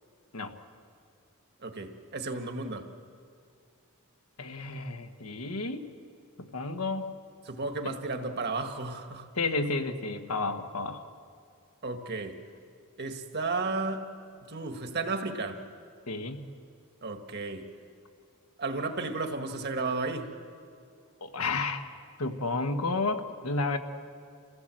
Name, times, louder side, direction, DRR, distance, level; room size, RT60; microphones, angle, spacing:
voice 1, 1.6-2.9 7.4-9.3 11.8-12.4 13.0-14.1 14.5-15.6 17.0-17.7 18.6-20.3, right 3 dB, 50° right, 6 dB, 1.7 m, -33 dB
voice 2, 4.4-5.9 6.4-7.1 7.8-7.9 9.3-11.0 16.1-16.5 21.2-21.8 22.2-23.8, left 3 dB, 75° left, 6 dB, 1.5 m, -31 dB
28.5 x 16.5 x 7.7 m, 2.3 s
head